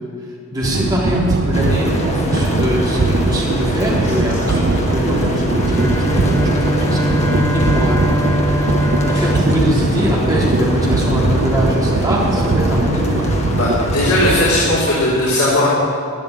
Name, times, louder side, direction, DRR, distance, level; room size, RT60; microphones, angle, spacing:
voice 1, 0.5-8.0 8.4-8.8 9.1-13.3, equal, 15° right, -5 dB, 3.7 m, -22 dB
sound 1, 0.6-14.8, right 3 dB, 50° right, 0.6 m, -20 dB
sound 2, 1.5-14.8, left 1 dB, 30° left, 1.8 m, -24 dB
Bowed string instrument, 5.6-11.0, equal, 15° left, 0.8 m, -22 dB
voice 2, 13.5-15.7, left 1 dB, 75° left, -7 dB, 3.5 m, -17 dB
12.5 x 11.0 x 8.9 m, 2.5 s
head